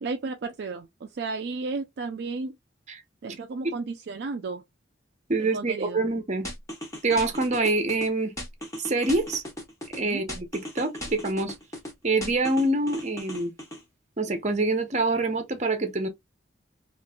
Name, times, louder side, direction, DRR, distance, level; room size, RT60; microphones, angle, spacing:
voice 1, 0.0-2.6 3.2-4.6 5.4-6.0 10.0-10.2, right 3 dB, 60° right, 0.4 m, -33 dB
voice 2, 5.3-6.5 7.0-8.3 8.8-9.4 9.9-11.5 12.0-13.5 14.2-16.1, right 2 dB, 40° right, 0.7 m, -25 dB
sound 1, 6.4-8.1 8.4-10.0 10.3-11.9 12.2-13.8, equal, 15° left, 1.1 m, -37 dB
3.0 x 2.5 x 2.2 m
head